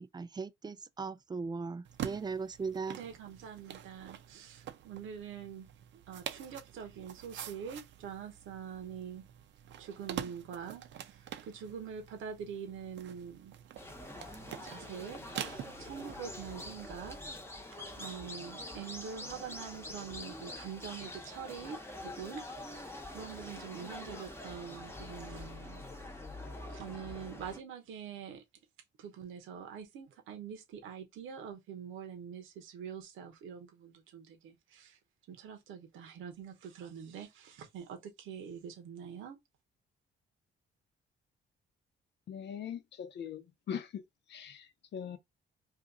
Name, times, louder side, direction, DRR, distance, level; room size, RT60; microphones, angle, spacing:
voice 1, 0.0-3.0, right 4 dB, 20° right, 0.4 m, -38 dB
sound 1, 1.8-16.8, right 10 dB, 70° right, 0.6 m, -46 dB
voice 2, 3.0-9.3 9.8-13.5 14.6-15.2 15.8-17.2 17.7-26.3 26.7-28.4 29.0-35.0 35.3-39.4, right 7 dB, 85° right, 0.9 m, -45 dB
sound 2, 13.8-27.6, left 1 dB, 10° left, 0.8 m, -45 dB
voice 3, 42.3-44.0 44.3-45.2, left 8 dB, 60° left, 0.7 m, -41 dB
2.8 x 2.5 x 3.6 m
cardioid pair, 90°, 20 cm